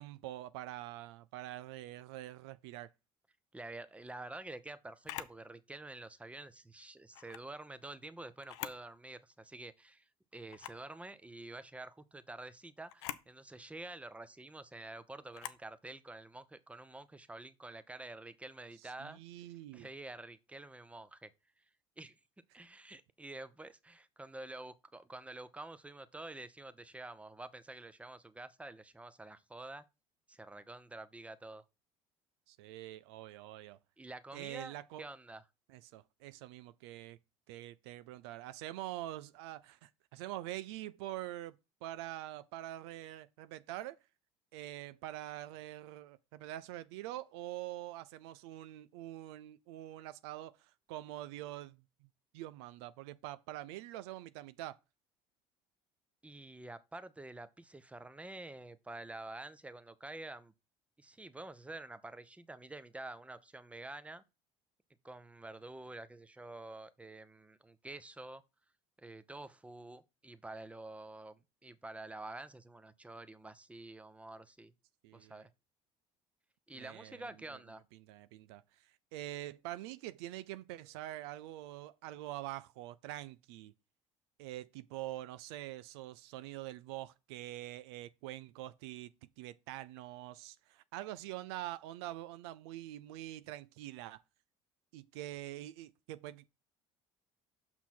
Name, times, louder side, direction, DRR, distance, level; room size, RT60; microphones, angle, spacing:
voice 1, 0.0-2.9 18.8-19.9 32.5-33.8 34.3-35.1 35.7-37.2 37.5-41.6 41.8-44.0 44.5-52.1 52.3-54.8 75.0-75.4 76.7-77.6 77.9-83.7 84.4-94.2 94.9-96.5, right 15 dB, 85° right, 0.4 m, -45 dB
voice 2, 3.5-19.2 19.7-21.3 22.0-22.2 22.5-29.8 30.3-31.6 34.0-35.4 56.2-60.5 61.0-64.2 65.0-68.4 69.0-74.7 75.1-75.5 76.7-77.8, right 2 dB, 10° right, 0.8 m, -48 dB
Camera, 5.0-5.4 7.1-7.5 8.4-8.9 9.3-9.4 10.5-10.9 12.9-13.3 15.3-15.7, left 14 dB, 90° left, 0.5 m, -44 dB
5.9 x 5.8 x 4.3 m
supercardioid pair, 80°, 14 cm